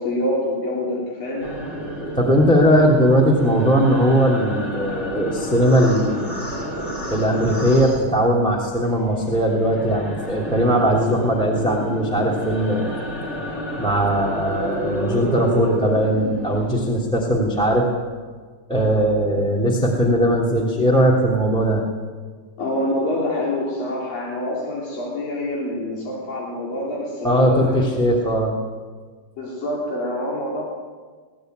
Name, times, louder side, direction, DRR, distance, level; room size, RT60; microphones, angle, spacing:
voice 1, 0.0-1.5 22.6-27.9 29.4-30.6, left 1 dB, 75° left, -4 dB, 5.4 m, -26 dB
sound 1, 1.4-8.7 9.0-17.0, equal, 20° left, 2.8 m, -30 dB
voice 2, 2.2-6.3 7.1-12.9 13.8-17.8 18.7-21.8 27.2-28.5, equal, ahead, 0 dB, 2.4 m, -19 dB
21.5 x 17.5 x 9.5 m, 1.5 s
omnidirectional pair, 4.0 m